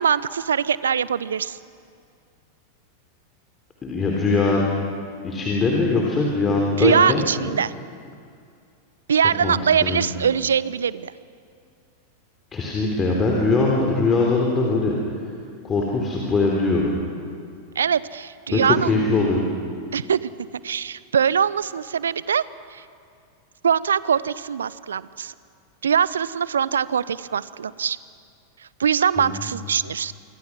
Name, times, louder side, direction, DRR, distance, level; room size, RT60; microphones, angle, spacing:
voice 1, 0.0-1.6 6.8-7.7 9.1-11.1 17.8-18.9 19.9-20.3 20.6-22.4 22.7-22.8 23.6-25.3 25.8-28.0 28.8-30.1, right 7 dB, 70° right, 19 dB, 0.6 m, -22 dB
voice 2, 3.8-4.6 5.2-7.5 9.4-9.6 9.8-10.0 12.5-14.9 15.6-16.9 18.5-19.4 29.2-29.3, left 3 dB, 20° left, -1 dB, 3.4 m, -21 dB
27.0 x 24.0 x 6.1 m, 2.3 s
figure-of-eight pair, 90°, 0 cm